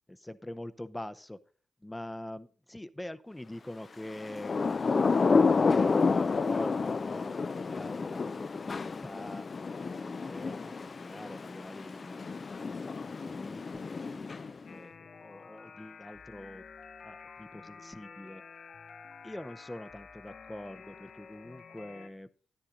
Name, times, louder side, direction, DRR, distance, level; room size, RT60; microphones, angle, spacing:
voice 1, 0.1-1.4 1.8-9.5 9.8-12.3 12.6-14.3 14.7-16.6 17.0-18.4 19.2-22.3, left 1 dB, 10° left, 13 dB, 0.7 m, -44 dB
Thunder / Rain, 4.2-14.7, left 4 dB, 45° left, 0.5 m, -30 dB
sound 1, 14.7-22.1, left 5 dB, 70° left, 0.9 m, -50 dB
10.0 x 10.0 x 3.8 m, 0.39 s
supercardioid pair, 50°, 0 cm